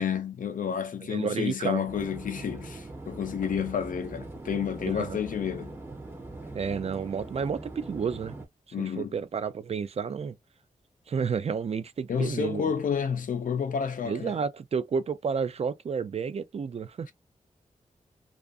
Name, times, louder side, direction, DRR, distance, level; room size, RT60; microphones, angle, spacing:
voice 1, 0.0-5.7 8.7-9.1 12.1-14.3, left 7 dB, 80° left, 0.5 m, -30 dB
voice 2, 1.1-1.8 4.8-5.2 6.5-8.4 8.8-10.4 11.1-12.7 14.0-17.1, right 6 dB, 50° right, 0.4 m, -31 dB
sound 1, 1.9-8.5, right 2 dB, 15° right, 0.7 m, -42 dB
2.5 x 2.4 x 2.4 m
wide cardioid pair, 85°, 14 cm